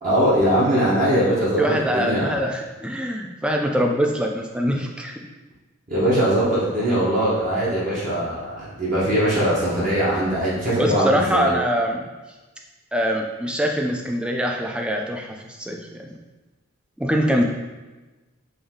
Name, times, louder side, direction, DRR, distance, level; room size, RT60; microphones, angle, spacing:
voice 1, 0.0-2.4 5.9-11.5, right 1 dB, 40° right, -8 dB, 1.0 m, -21 dB
voice 2, 1.6-5.1 10.8-12.1 12.9-16.2 17.0-17.4, equal, 5° right, 1 dB, 0.4 m, -23 dB
5.1 x 2.6 x 3.6 m, 1.2 s
head